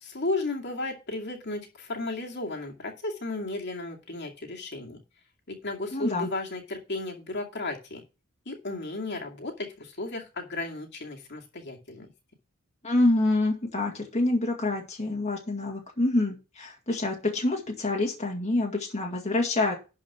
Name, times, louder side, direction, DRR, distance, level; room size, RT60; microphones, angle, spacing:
voice 1, 0.0-5.0 5.5-8.0 8.5-12.1, left 2 dB, 55° left, 1 dB, 2.3 m, -34 dB
voice 2, 5.9-6.3 12.8-19.8, left 2 dB, 35° left, 0 dB, 2.1 m, -26 dB
11.5 x 4.9 x 6.0 m, 0.30 s
head